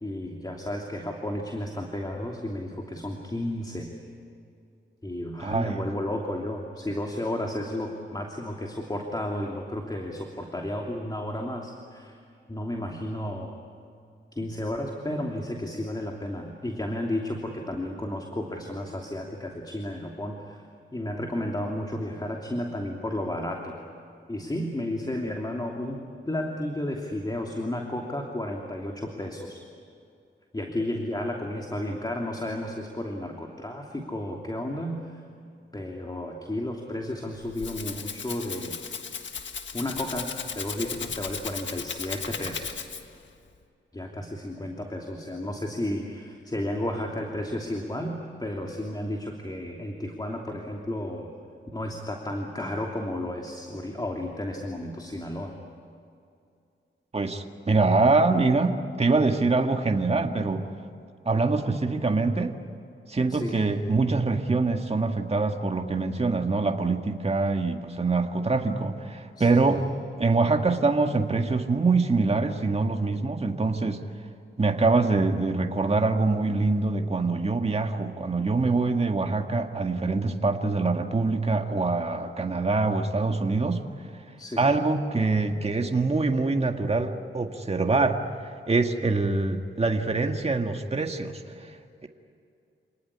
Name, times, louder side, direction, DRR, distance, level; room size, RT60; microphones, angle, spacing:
voice 1, 0.0-3.9 5.0-12.2 12.5-13.5 14.3-20.6 20.9-23.7 24.3-29.6 30.5-35.2 35.7-38.8 39.7-42.9 43.9-51.3 51.7-55.5 63.3-63.6 69.4-69.8 84.4-84.7, left 1 dB, 20° left, 1 dB, 2.9 m, -32 dB
voice 2, 5.4-5.9 57.1-60.6 61.3-62.5 63.1-69.9 70.2-74.0 74.6-83.8 84.6-88.2 88.4-91.7, right 3 dB, 30° right, 4 dB, 1.9 m, -24 dB
Rattle (instrument), 37.3-43.2, left 6 dB, 65° left, 1.6 m, -36 dB
27.5 x 19.0 x 9.8 m, 2.5 s
cardioid pair, 65°, 20 cm